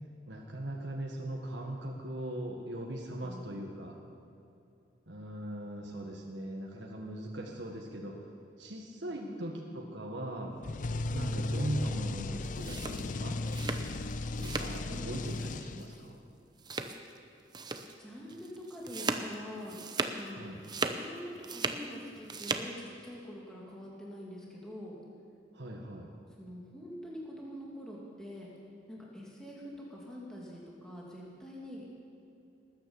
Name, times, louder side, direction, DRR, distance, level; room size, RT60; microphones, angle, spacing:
voice 1, 0.3-4.0 5.1-8.2 8.6-10.6 11.1-13.4 14.4-16.2 20.3-20.6 25.5-26.1, right 1 dB, 70° right, 0 dB, 1.6 m, -40 dB
voice 2, 3.2-3.7 9.1-9.7 11.1-11.4 14.9-15.6 18.0-19.8 20.1-20.4 21.0-25.0 26.4-28.5 28.9-32.0, equal, 5° left, -5 dB, 2.6 m, -45 dB
sound 1, 10.6-16.1, left 2 dB, 45° left, 0.5 m, -35 dB
sound 2, 12.4-14.8 15.1-15.5 15.8-16.0 16.6-17.2 17.5-17.9 18.3-20.3 20.6-21.9 22.2-22.7, right 3 dB, 25° right, 0.7 m, -37 dB
19.5 x 9.6 x 7.0 m, 2.7 s
head